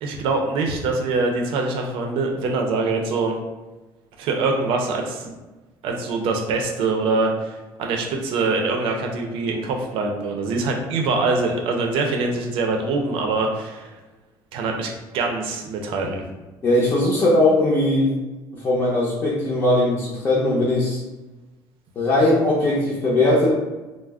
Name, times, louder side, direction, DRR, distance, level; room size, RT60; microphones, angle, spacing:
voice 1, 0.0-3.4 4.2-5.4 5.8-13.9 14.5-16.2, right 3 dB, 75° right, 2 dB, 0.5 m, -24 dB
voice 2, 16.6-18.1 18.5-21.0 22.0-23.5, left 1 dB, 30° left, -6 dB, 0.6 m, -19 dB
2.4 x 2.0 x 3.4 m, 1.2 s
cardioid pair, 155°, 9 cm